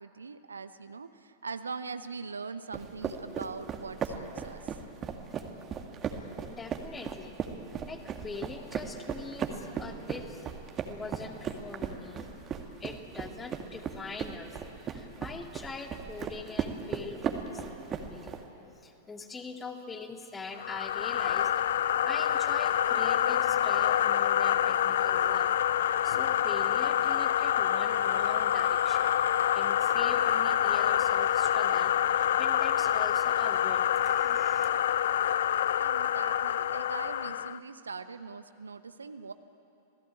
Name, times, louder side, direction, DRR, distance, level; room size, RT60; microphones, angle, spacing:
voice 1, 0.0-4.8 35.8-39.3, right 4 dB, 75° right, 11 dB, 0.9 m, -41 dB
sound 1, 2.7-18.4, right 7 dB, 25° right, 2.0 m, -37 dB
voice 2, 6.5-7.4 7.9-10.5 10.9-12.3 12.8-18.4 18.8-21.5 22.0-25.5 26.0-29.1 29.5-34.7, left 4 dB, 15° left, 5 dB, 2.1 m, -43 dB
sound 2, 20.6-37.6, left 10 dB, 60° left, 0.5 m, -27 dB
27.0 x 17.5 x 8.8 m, 2.8 s
figure-of-eight pair, 95°, 0 cm